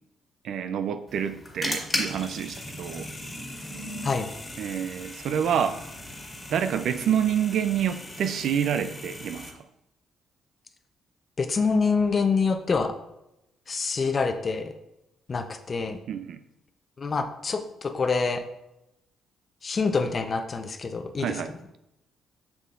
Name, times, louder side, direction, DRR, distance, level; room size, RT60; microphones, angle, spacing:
voice 1, 0.4-3.1 4.6-5.8 6.5-9.5 16.1-16.4 21.2-21.5, right 8 dB, 70° right, 10 dB, 0.5 m, -27 dB
sound 1, 1.1-9.5, left 1 dB, 20° left, 1.8 m, -37 dB
voice 2, 11.4-12.9 13.7-14.7 15.3-16.0 17.0-18.4 19.6-21.4, left 4 dB, 40° left, 8 dB, 0.7 m, -26 dB
7.2 x 6.6 x 2.5 m, 0.87 s
cardioid pair, 90°, 0 cm